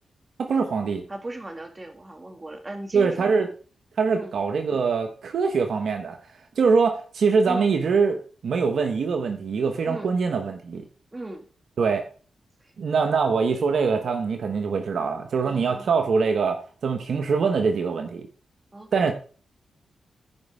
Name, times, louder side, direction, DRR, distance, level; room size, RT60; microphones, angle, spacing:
voice 1, 0.4-1.0 2.9-3.5 4.0-6.2 6.6-10.8 11.8-12.1 12.8-18.3 18.9-19.1, right 5 dB, 75° right, 1.1 m, -23 dB
voice 2, 1.1-3.3 4.1-4.4 7.5-7.7 9.8-10.1 11.1-11.5 12.6-12.7 15.4-15.9 18.7-19.1, right 2 dB, 25° right, 2.1 m, -37 dB
15.0 x 5.3 x 3.5 m
cardioid pair, 50°, 0 cm